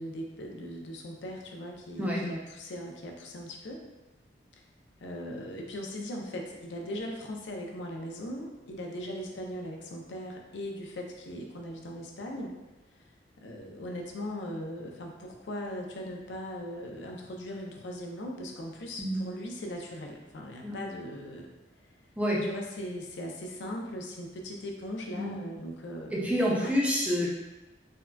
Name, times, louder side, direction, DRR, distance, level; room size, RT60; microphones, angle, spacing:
voice 1, 0.0-3.9 5.0-12.5 13.4-21.5 22.5-26.2 26.6-26.7, equal, 90° left, 1 dB, 0.5 m, -39 dB
voice 2, 26.1-27.3, equal, 10° right, -5 dB, 0.5 m, -28 dB
3.6 x 2.1 x 2.2 m, 1.1 s
head